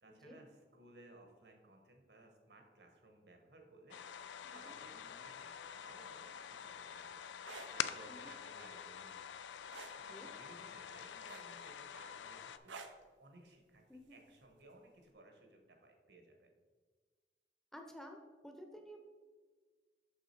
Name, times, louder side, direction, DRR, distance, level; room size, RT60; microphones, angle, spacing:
voice 1, 0.0-9.2 10.0-12.8 13.2-13.8 14.1-16.5, right 2 dB, 65° right, 3 dB, 1.3 m, -60 dB
sound 1, 3.9-12.6, left 8 dB, 80° left, 0.3 m, -46 dB
sound 2, 7.3-7.7 9.7-10.0 11.3-11.7 12.7-13.0 14.4-14.6, right 4 dB, 90° right, 0.7 m, -49 dB
voice 2, 17.7-19.0, equal, ahead, 3 dB, 0.8 m, -53 dB
6.4 x 5.9 x 4.4 m, 1.4 s
head